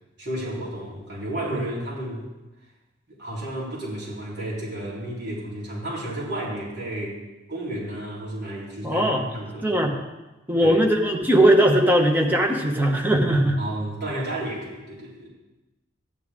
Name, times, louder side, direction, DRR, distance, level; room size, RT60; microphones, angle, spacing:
voice 1, 0.2-2.3 3.1-7.2 7.5-9.9 10.6-10.8 13.6-15.3, right 1 dB, 60° right, -6 dB, 3.9 m, -32 dB
voice 2, 8.8-9.2 9.6-10.0 10.5-13.6, right 1 dB, 10° right, 1 dB, 1.3 m, -19 dB
14.0 x 10.5 x 3.7 m, 1.1 s
head